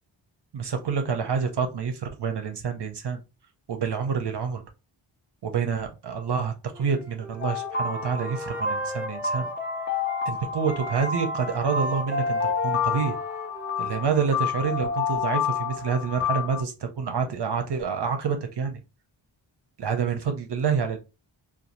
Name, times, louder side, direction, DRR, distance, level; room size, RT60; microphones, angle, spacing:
voice 1, 0.5-3.2 3.7-4.6 5.4-9.5 10.3-13.2 13.8-18.8 19.8-21.0, right 6 dB, 60° right, 6 dB, 0.6 m, -27 dB
Wind instrument woodwind instrument, 6.7-10.3 10.6-14.4, equal, 5° right, 0.5 m, -39 dB
sound 1, 7.4-16.6, left 5 dB, 25° left, 0.8 m, -29 dB
2.9 x 2.3 x 2.5 m, 0.28 s
wide cardioid pair, 80°, 47 cm